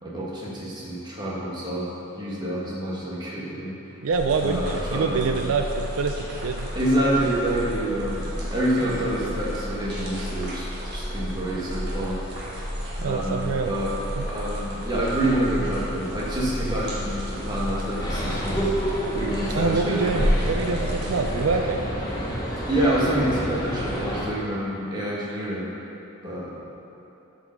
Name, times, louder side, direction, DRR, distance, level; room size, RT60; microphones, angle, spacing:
voice 1, 0.0-1.9 2.2-3.7 4.4-5.5 6.7-12.2 13.0-13.9 14.2-18.7 19.1-20.0 22.7-25.7 26.2-26.6, right 1 dB, 20° right, -6 dB, 1.6 m, -27 dB
voice 2, 4.0-6.7 13.0-13.7 14.2-14.3 19.5-21.8, right 4 dB, 75° right, 4 dB, 0.4 m, -26 dB
sound 1, 4.1-21.5, equal, 50° right, 1.5 m, -31 dB
sound 2, 18.0-24.3, equal, 20° left, 1.2 m, -29 dB
8.3 x 5.2 x 6.4 m, 2.9 s
head